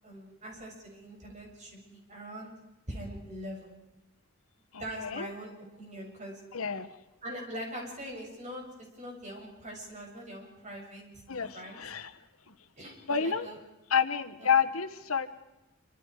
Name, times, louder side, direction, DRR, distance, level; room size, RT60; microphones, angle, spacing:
voice 1, 0.0-2.5 2.9-3.7 4.8-5.5 5.8-6.4 7.2-8.6 9.0-11.8 12.8-13.6, equal, 35° right, 0 dB, 7.4 m, -42 dB
voice 2, 4.7-5.3 6.5-6.9 11.3-12.1 13.1-13.5 13.9-15.3, left 6 dB, 85° left, 10 dB, 1.4 m, -29 dB
27.5 x 26.0 x 4.9 m, 0.98 s
head